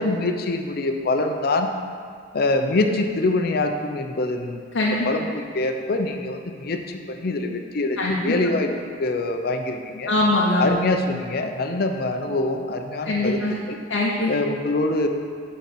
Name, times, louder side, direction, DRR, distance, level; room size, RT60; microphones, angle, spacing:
voice 1, 0.0-1.7 2.3-4.6 5.0-8.7 9.0-10.1 10.6-13.4 13.7-13.8 14.3-15.1, left 2 dB, 55° left, 5 dB, 0.6 m, -24 dB
voice 2, 4.7-5.1 8.0-8.4 10.1-10.8 13.1-13.5 13.9-14.3, left 2 dB, 85° left, -4 dB, 0.8 m, -22 dB
9.5 x 4.3 x 4.2 m, 2.1 s
head